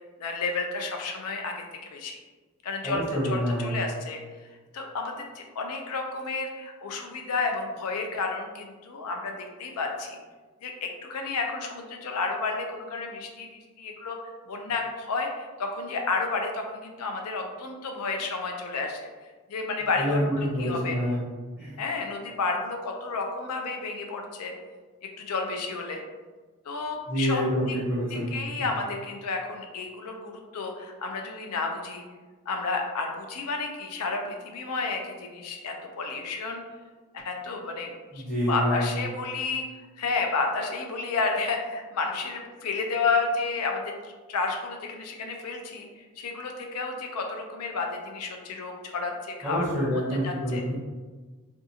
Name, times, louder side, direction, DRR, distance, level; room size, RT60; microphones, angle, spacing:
voice 1, 0.2-1.6 1.9-2.2 2.6-4.2 4.7-10.2 10.6-14.2 14.5-19.0 19.5-21.0 21.8-24.5 25.0-26.0 26.7-27.4 28.1-32.0 32.5-36.6 37.1-39.6 40.0-49.8 50.2-50.6, left 4 dB, 85° left, 3 dB, 0.5 m, -31 dB
voice 2, 2.8-3.7 20.0-21.2 21.6-21.8 27.1-28.7 38.1-39.0 49.4-50.8, equal, 5° left, -9 dB, 0.6 m, -27 dB
2.6 x 2.3 x 2.7 m, 1.3 s
head